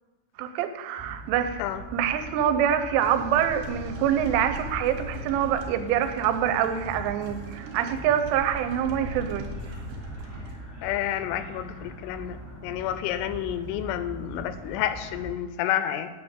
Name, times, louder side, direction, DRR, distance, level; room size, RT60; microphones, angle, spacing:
voice 1, 0.4-1.6 1.9-9.5, right 9 dB, 85° right, 9 dB, 3.2 m, -25 dB
sound 1, 1.0-15.3, right 2 dB, 5° right, 1.3 m, -42 dB
sound 2, 3.0-10.5, right 1 dB, 60° right, 3.0 m, -39 dB
voice 2, 10.8-12.4 12.6-16.1, left 11 dB, 85° left, 11 dB, 3.1 m, -29 dB
9.8 x 5.8 x 7.9 m, 1.3 s
omnidirectional pair, 5.6 m